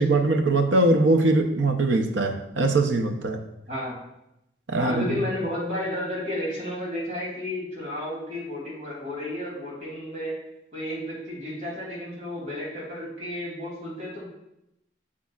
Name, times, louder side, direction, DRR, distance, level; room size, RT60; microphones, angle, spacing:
voice 1, 0.0-3.4 4.7-5.2, right 2 dB, 90° right, 5 dB, 0.7 m, -22 dB
voice 2, 4.8-10.3 10.7-14.2, left 1 dB, 40° right, -5 dB, 2.9 m, -32 dB
8.3 x 7.4 x 2.4 m, 0.83 s
head